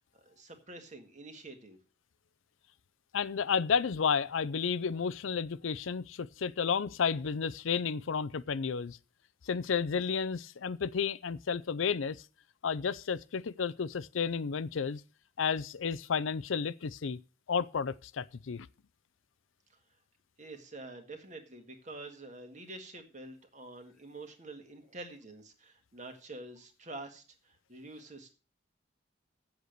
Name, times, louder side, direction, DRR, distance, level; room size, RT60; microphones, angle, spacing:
voice 1, 0.1-1.8 20.4-28.3, right 2 dB, 40° right, 1.8 m, -47 dB
voice 2, 3.1-9.0 9.5-12.2 12.6-15.0 15.4-17.2 17.5-18.7, left 6 dB, 80° left, 0.5 m, -32 dB
8.1 x 7.8 x 6.6 m
head